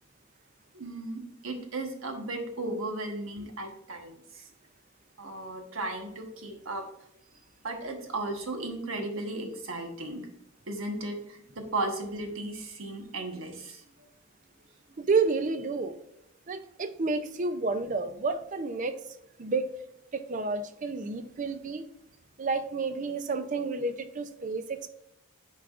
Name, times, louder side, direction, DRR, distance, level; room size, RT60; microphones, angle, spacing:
voice 1, 0.7-4.5 5.2-6.8 7.6-10.3 10.7-13.8, right 2 dB, 75° right, 4 dB, 1.2 m, -35 dB
voice 2, 15.0-16.0 16.5-19.0 19.4-19.7 20.1-21.9 22.4-24.9, right 4 dB, 35° right, 10 dB, 0.4 m, -30 dB
9.4 x 4.7 x 2.4 m, 0.78 s
head